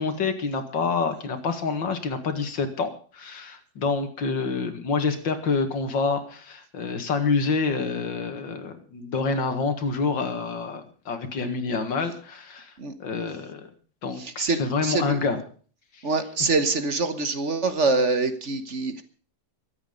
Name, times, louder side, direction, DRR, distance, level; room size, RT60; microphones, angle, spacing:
voice 1, 0.0-12.7 13.0-13.6 14.0-15.4 16.0-16.1, left 4 dB, 75° left, 7 dB, 2.6 m, -27 dB
voice 2, 14.2-15.2 16.0-19.0, right 3 dB, 45° right, 10 dB, 1.4 m, -25 dB
23.0 x 8.5 x 5.3 m, 0.42 s
omnidirectional pair, 2.0 m